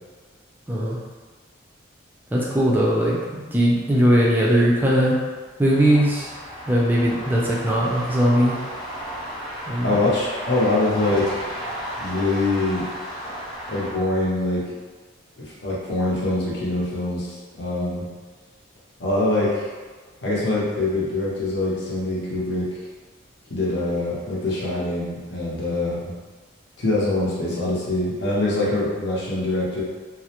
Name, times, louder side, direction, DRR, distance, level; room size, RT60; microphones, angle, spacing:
voice 1, 0.7-1.0 2.3-5.2 5.6-6.3 6.7-8.6 9.7-10.0, equal, 10° right, -5 dB, 0.3 m, -19 dB
sound 1, 5.7-13.9, equal, 25° left, 0.7 m, -33 dB
voice 2, 9.8-11.5 12.0-12.8 13.7-14.7 15.4-18.0 19.0-19.7 20.2-22.7 23.5-26.1 26.8-29.8, left 2 dB, 55° left, -6 dB, 0.7 m, -24 dB
2.4 x 2.0 x 2.8 m, 1.4 s
head